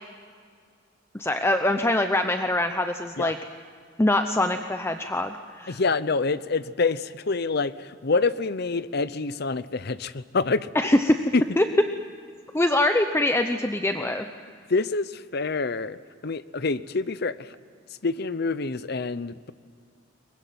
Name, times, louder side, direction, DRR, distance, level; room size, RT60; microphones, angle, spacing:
voice 1, 1.1-3.4 4.0-5.8 10.7-11.2 11.6-11.7 12.5-14.3, left 1 dB, 15° left, 7 dB, 0.7 m, -23 dB
voice 2, 5.7-10.7 11.3-11.4 14.7-16.0 16.2-17.5 18.0-19.5, left 4 dB, 55° left, 15 dB, 0.7 m, -26 dB
23.0 x 21.0 x 9.3 m, 2.1 s
head